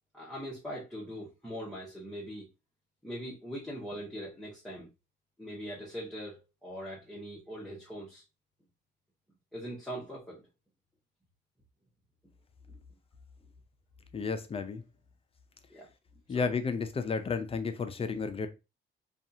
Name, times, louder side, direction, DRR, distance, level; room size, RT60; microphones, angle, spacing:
voice 1, 0.1-2.5 3.0-4.9 5.4-8.2 9.5-10.5 12.7-12.8 15.7-15.9 16.3-16.5, equal, ahead, 0.9 m, -41 dB
voice 2, 14.1-14.8 16.3-18.5, left 5 dB, 30° left, 0.4 m, -32 dB
2.6 x 2.4 x 2.6 m
cardioid pair, 90°, 20 cm